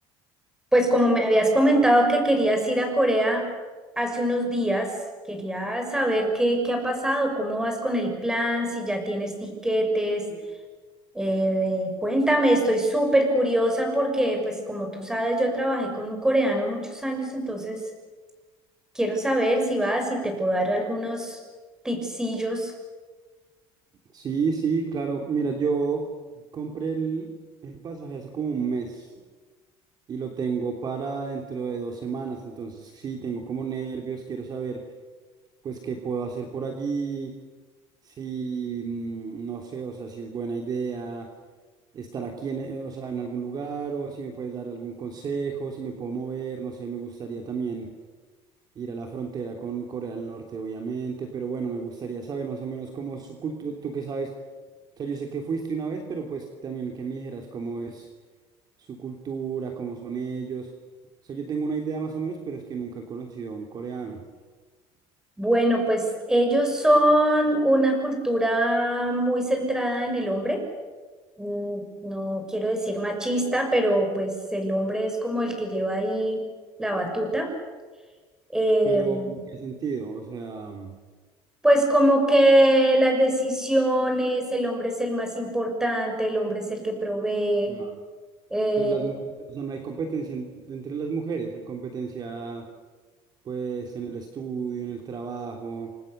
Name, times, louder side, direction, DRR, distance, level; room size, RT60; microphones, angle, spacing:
voice 1, 0.7-3.5 4.0-4.9 5.3-10.3 11.1-17.8 18.9-21.4 21.8-22.7 65.4-70.6 71.4-76.4 76.8-77.5 78.5-79.4 81.6-87.8 88.5-88.9, right 1 dB, 5° right, 4 dB, 6.0 m, -23 dB
voice 2, 24.1-26.1 26.5-27.3 27.6-29.1 30.1-34.8 35.6-37.3 38.0-41.3 41.9-47.9 48.7-54.3 55.0-58.1 58.9-60.7 61.2-64.2 78.8-80.9 87.7-87.9 88.8-89.2 89.5-92.7 93.4-95.9, right 5 dB, 35° right, 3 dB, 3.1 m, -32 dB
29.0 x 26.0 x 6.8 m, 1.4 s
cardioid pair, 150°, 12 cm